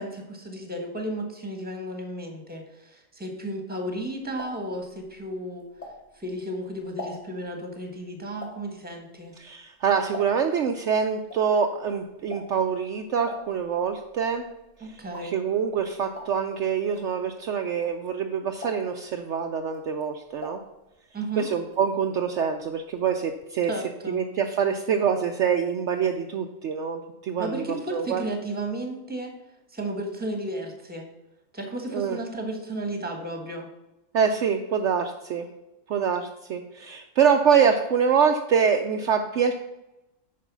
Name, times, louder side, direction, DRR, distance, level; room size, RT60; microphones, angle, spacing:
voice 1, 0.0-5.7 6.1-9.3 14.8-15.3 21.1-21.5 23.7-24.2 27.4-29.3 29.7-31.1 31.5-33.7, right 1 dB, 5° right, 3 dB, 1.3 m, -33 dB
sound 1, 3.8-6.4 6.7-10.7 10.9-18.2 18.5-19.1 19.6-21.3 21.6-22.7 22.9-23.0 23.3-23.4, left 2 dB, 30° left, 1.7 m, -43 dB
voice 2, 9.4-14.4 15.2-20.6 21.4-23.7 24.1-28.2 31.9-32.2 34.1-35.5 35.9-39.5, right 7 dB, 65° right, 5 dB, 0.8 m, -25 dB
9.3 x 4.6 x 6.1 m, 0.94 s
omnidirectional pair, 1.5 m